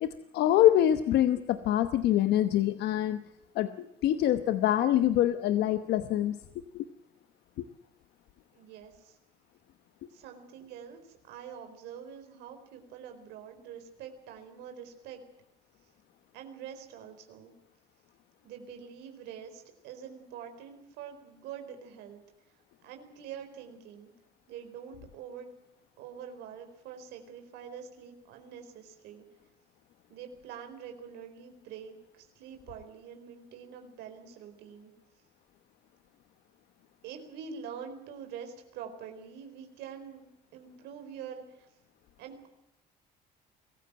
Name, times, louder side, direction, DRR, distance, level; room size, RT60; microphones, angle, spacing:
voice 1, 0.0-3.2 3.5-6.4 6.7-6.9 7.6-7.7, left 12 dB, 75° left, 11 dB, 1.1 m, -25 dB
voice 2, 8.5-9.2 10.1-15.2 16.3-17.5 18.4-22.2 22.5-24.1 24.5-25.5 26.0-29.2 30.1-34.9 37.0-40.3 40.5-41.7 42.2-42.5, right 7 dB, 90° right, 5 dB, 4.3 m, -45 dB
23.0 x 15.0 x 8.9 m, 0.87 s
cardioid pair, 110°, 17 cm